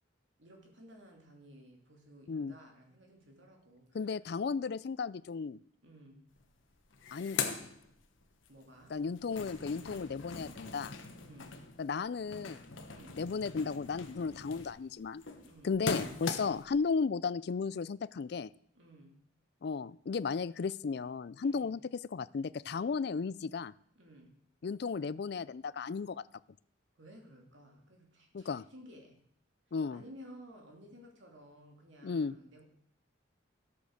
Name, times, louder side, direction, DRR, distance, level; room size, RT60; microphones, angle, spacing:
voice 1, 0.4-4.2 5.8-6.3 8.5-9.0 11.2-11.5 12.9-13.2 15.4-15.7 18.7-19.2 21.4-21.7 23.9-24.4 27.0-29.2 29.9-32.7, equal, 70° right, 2 dB, 2.8 m, -55 dB
voice 2, 3.9-5.6 7.1-7.5 8.9-10.9 11.8-12.6 13.2-15.2 15.6-18.5 19.6-21.8 22.1-23.7 24.6-26.2 28.3-28.7 29.7-30.0 32.0-32.3, left 5 dB, 55° left, 18 dB, 0.4 m, -35 dB
sound 1, 6.4-6.5 6.7-8.5 8.9-16.8, left 5 dB, 85° left, 1.3 m, -41 dB
12.5 x 8.5 x 6.4 m, 0.67 s
head